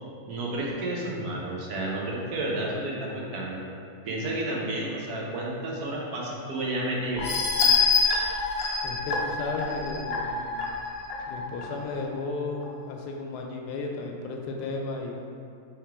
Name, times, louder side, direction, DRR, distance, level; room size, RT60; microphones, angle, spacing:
voice 1, 0.3-3.6 4.0-7.3, right 1 dB, 70° right, -3 dB, 1.3 m, -31 dB
sound 1, 7.2-11.6 12.1-12.2 12.6-12.7, left 4 dB, 65° left, 0.6 m, -26 dB
voice 2, 8.8-10.5 11.3-15.2, left 3 dB, 85° left, 2 dB, 1.2 m, -34 dB
3.6 x 3.2 x 4.6 m, 2.4 s
omnidirectional pair, 1.7 m